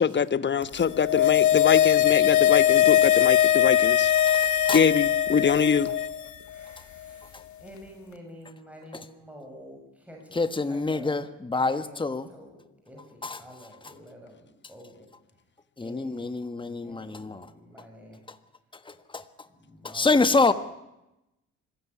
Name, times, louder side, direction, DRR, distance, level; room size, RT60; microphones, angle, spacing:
voice 1, 0.0-4.1 4.7-5.9, left 6 dB, 35° left, 15 dB, 1.2 m, -24 dB
sound 1, 0.8-6.3 6.6-6.7, left 11 dB, 70° left, 1.6 m, -21 dB
voice 2, 6.5-15.1 15.8-16.3 16.6-18.2 19.6-20.5, equal, 5° right, 1 dB, 6.9 m, -48 dB
voice 3, 10.3-12.3 13.2-13.4 15.8-17.5 19.1-19.2 19.8-20.5, left 3 dB, 15° left, 11 dB, 1.5 m, -26 dB
25.0 x 16.5 x 9.8 m, 0.92 s
cardioid pair, 90°, 30 cm